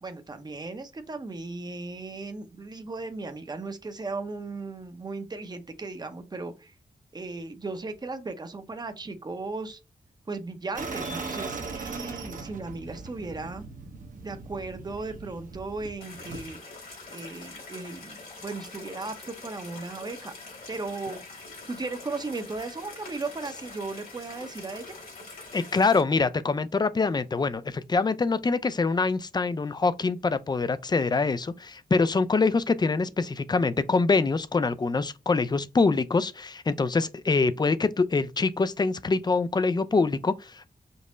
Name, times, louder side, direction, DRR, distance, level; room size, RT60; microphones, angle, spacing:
voice 1, 0.0-6.7 7.1-9.8 10.3-13.6 14.2-16.6 17.1-20.3 20.7-21.2 21.7-24.8, right 3 dB, 25° right, 0.7 m, -36 dB
sound 1, 10.7-16.5, right 4 dB, 60° right, 0.9 m, -39 dB
sound 2, 16.0-26.0, left 3 dB, 85° left, 2.4 m, -44 dB
voice 2, 25.5-40.7, left 4 dB, 25° left, 0.4 m, -25 dB
5.3 x 2.0 x 3.7 m
cardioid pair, 75°, 15 cm